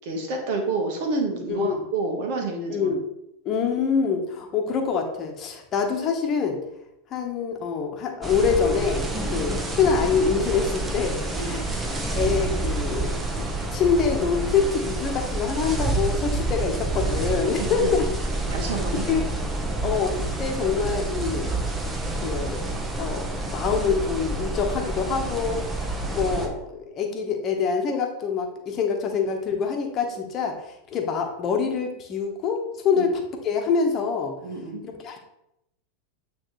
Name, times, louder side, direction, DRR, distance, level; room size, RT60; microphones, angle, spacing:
voice 1, 0.0-3.0 9.2-9.4 11.3-11.6 17.6-17.9 18.5-19.3 32.9-33.0 34.4-34.8, right 3 dB, 55° right, 2 dB, 1.5 m, -29 dB
voice 2, 1.5-1.8 2.7-3.0 3.4-6.6 7.1-9.0 9.3-13.4 13.7-18.0 19.1-19.2 19.8-21.5 22.2-22.6 23.0-30.6 30.9-34.3 34.8-35.2, left 6 dB, 35° left, 2 dB, 1.2 m, -25 dB
sound 1, 8.2-26.5, right 2 dB, 15° right, 1.1 m, -28 dB
8.8 x 3.4 x 3.2 m, 0.84 s
figure-of-eight pair, 85°, 0 cm